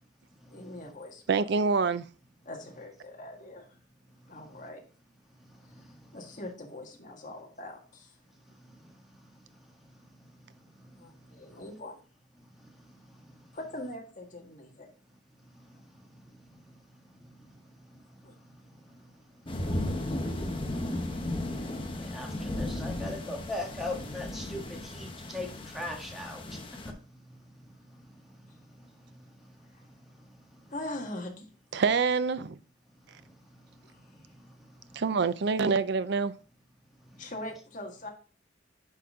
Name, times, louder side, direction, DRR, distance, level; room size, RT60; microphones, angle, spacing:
voice 1, 0.5-1.4 2.4-3.7 4.3-4.8 6.1-8.2 10.9-12.0 13.5-14.9 18.2-18.3 29.7-29.8 30.7-31.4 33.9-34.0 37.2-38.1, left 1 dB, 40° left, 1.7 m, -42 dB
voice 2, 1.3-2.1 31.7-32.6 34.9-36.3, right 5 dB, 60° right, 0.5 m, -26 dB
sound 1, 19.5-26.9, left 1 dB, 25° left, 1.0 m, -35 dB
voice 3, 21.9-26.6 26.9-27.0, left 2 dB, ahead, 1.5 m, -38 dB
10.0 x 4.0 x 3.7 m
head